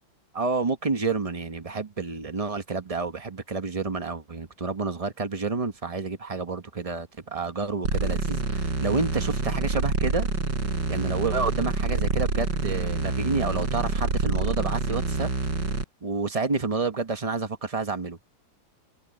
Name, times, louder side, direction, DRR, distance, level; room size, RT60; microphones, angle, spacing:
voice 1, 0.3-10.3 10.9-15.3 16.0-18.2, right 4 dB, 30° right, 0.7 m, -29 dB
sound 1, 7.8-15.8, right 3 dB, 65° right, 5.1 m, -27 dB
omnidirectional pair, 2.1 m